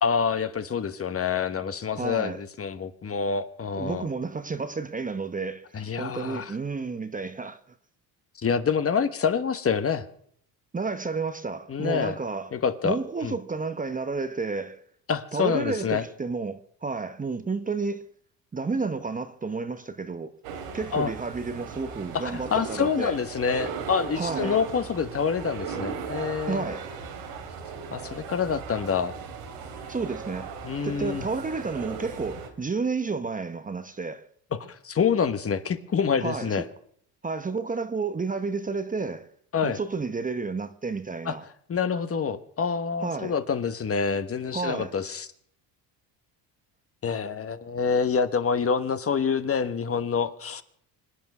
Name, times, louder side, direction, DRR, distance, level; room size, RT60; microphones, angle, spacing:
voice 1, 0.0-4.1 5.7-6.5 8.4-10.1 11.7-12.2 12.5-13.0 13.2-13.3 15.1-16.1 20.9-21.1 22.1-26.7 27.9-29.2 30.6-31.2 34.5-36.6 39.5-39.8 41.2-41.4 41.7-45.3 47.0-50.6, left 6 dB, 30° left, 1.3 m, -27 dB
voice 2, 2.0-2.4 3.7-7.6 10.7-12.5 12.8-14.8 15.3-18.1 18.5-20.3 20.7-23.1 24.2-24.6 26.5-26.9 29.9-30.5 30.8-34.2 36.2-36.6 37.2-39.3 39.6-41.4 43.0-43.3 44.5-44.9, right 4 dB, 20° right, 1.0 m, -31 dB
sound 1, 20.4-32.5, right 5 dB, 90° right, 3.0 m, -37 dB
25.0 x 9.3 x 6.1 m
cardioid pair, 105°, 44 cm